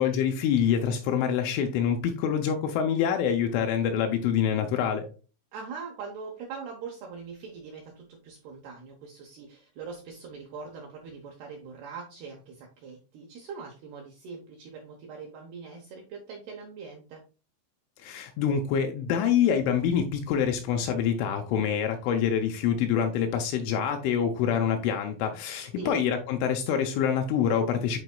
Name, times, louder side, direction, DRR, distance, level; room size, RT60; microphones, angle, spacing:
voice 1, 0.0-5.1 18.0-28.0, left 8 dB, 80° left, 5 dB, 2.9 m, -26 dB
voice 2, 5.5-17.2 25.8-26.0, right 5 dB, 75° right, 0 dB, 2.4 m, -42 dB
10.5 x 4.1 x 2.3 m, 0.34 s
omnidirectional pair, 5.9 m